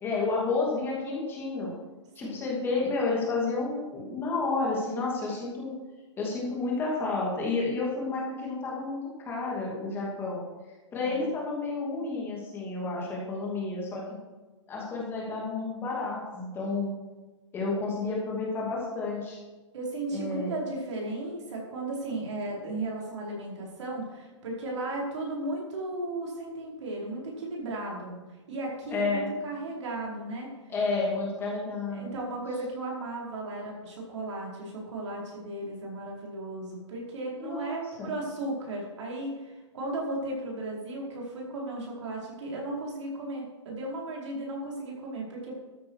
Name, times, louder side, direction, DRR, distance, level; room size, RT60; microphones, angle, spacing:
voice 1, 0.0-1.7 2.2-5.7 6.2-9.0 9.2-10.4 10.9-14.0 14.7-16.9 17.5-19.4 20.1-20.5 28.9-29.2 30.7-32.1 37.4-38.1, left 3 dB, 15° left, -3 dB, 2.5 m, -30 dB
voice 2, 19.7-28.1 28.5-30.5 31.9-45.5, right 2 dB, 65° right, -2 dB, 4.7 m, -35 dB
13.0 x 9.3 x 4.8 m, 1.3 s
hypercardioid pair, 160°, 16 cm